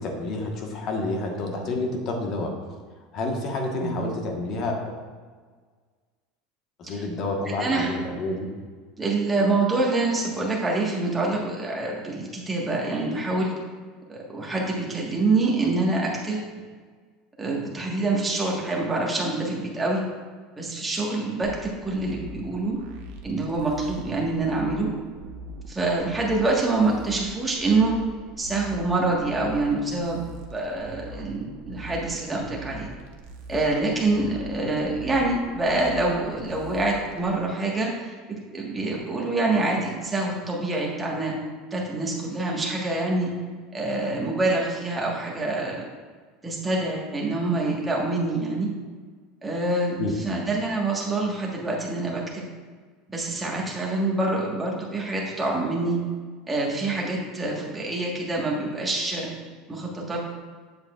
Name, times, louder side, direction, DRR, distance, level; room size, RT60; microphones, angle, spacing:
voice 1, 0.0-2.5 3.1-4.9 6.8-8.5 50.0-50.2, left 2 dB, 45° left, 2 dB, 1.3 m, -29 dB
voice 2, 9.0-13.5 14.1-16.5 17.4-20.0 20.6-22.8 23.2-24.9 25.7-27.9 28.4-30.2 30.5-32.9 33.5-38.1 38.5-41.3 41.7-43.3 43.7-45.9 46.4-48.7 49.4-52.4 53.1-56.0 56.5-59.3 59.7-60.2, right 2 dB, 10° right, -3 dB, 1.5 m, -26 dB
sound 1, 21.4-37.3, right 1 dB, 70° right, 1.0 m, -42 dB
8.0 x 7.2 x 2.4 m, 1.5 s
supercardioid pair, 140°, 0 cm